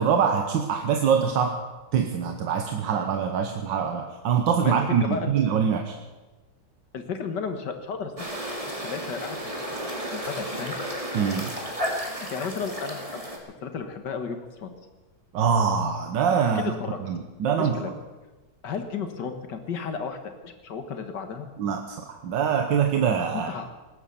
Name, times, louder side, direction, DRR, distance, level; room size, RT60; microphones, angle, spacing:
voice 1, 0.0-1.6 1.9-6.0 11.1-11.5 15.3-16.6 17.0-17.8 21.6-23.5, right 7 dB, 85° right, 4 dB, 1.7 m, -24 dB
voice 2, 4.6-5.3 6.9-8.3 8.8-9.4 10.1-10.8 12.1-13.3 13.6-14.7 16.6-17.0 17.6-17.9 18.6-21.5 23.3-23.7, left 5 dB, 70° left, 7 dB, 2.0 m, -33 dB
sound 1, 8.2-13.4, equal, 20° right, 2.2 m, -33 dB
19.0 x 10.0 x 6.9 m, 1.2 s
omnidirectional pair, 1.9 m